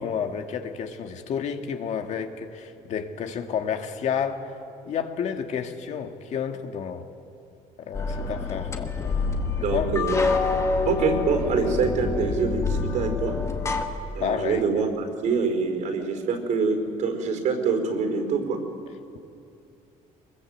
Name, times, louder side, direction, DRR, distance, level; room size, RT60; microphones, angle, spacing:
voice 1, 0.0-4.5 4.8-7.0 7.8-9.9 14.2-14.8, left 7 dB, 55° left, 5 dB, 1.8 m, -31 dB
sound 1, 7.9-13.9, left 4 dB, 20° left, 1.7 m, -26 dB
voice 2, 9.6-10.2 10.8-13.4 14.1-18.6, right 5 dB, 60° right, 5 dB, 4.7 m, -25 dB
24.0 x 21.5 x 8.1 m, 2.5 s
cardioid pair, 140°, 14 cm